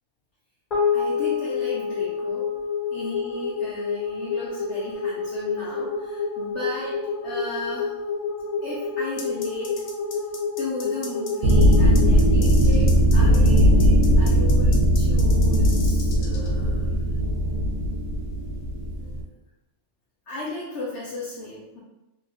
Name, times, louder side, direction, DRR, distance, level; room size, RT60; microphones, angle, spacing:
sound 1, 0.7-13.2, left 5 dB, 35° left, 1.0 m, -28 dB
voice 1, 0.9-2.5 2.9-7.9 8.6-9.8 10.6-17.2 19.0-19.3 20.3-21.8, left 2 dB, 60° left, -6 dB, 0.8 m, -35 dB
sound 2, 9.2-16.5, left 4 dB, 80° left, 1.1 m, -39 dB
sound 3, 11.4-19.2, equal, 80° right, 0.6 m, -18 dB
2.8 x 2.4 x 3.4 m, 0.98 s
omnidirectional pair, 1.8 m